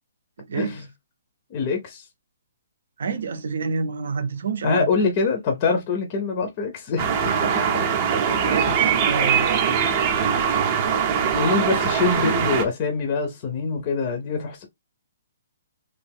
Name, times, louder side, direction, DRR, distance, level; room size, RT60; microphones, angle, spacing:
voice 1, 0.4-0.8 3.0-4.9 8.4-9.6, right 5 dB, 65° right, 0.6 m, -28 dB
voice 2, 1.5-2.1 4.6-7.7 8.7-8.8 11.1-14.6, left 4 dB, 25° left, 0.6 m, -25 dB
sound 1, 7.0-12.6, right 7 dB, 25° right, 0.6 m, -22 dB
3.2 x 2.6 x 3.4 m
hypercardioid pair, 175°, 0 cm